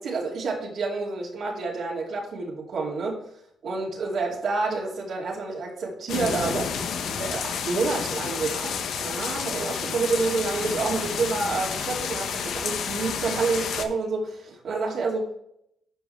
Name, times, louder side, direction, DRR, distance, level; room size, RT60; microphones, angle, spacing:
voice 1, 0.0-3.2 3.6-15.4, right 3 dB, 65° right, -2 dB, 2.6 m, -29 dB
sound 1, 6.1-13.8, left 7 dB, 75° left, 1.0 m, -30 dB
12.5 x 4.9 x 3.3 m, 0.73 s
cardioid pair, 90°, 0 cm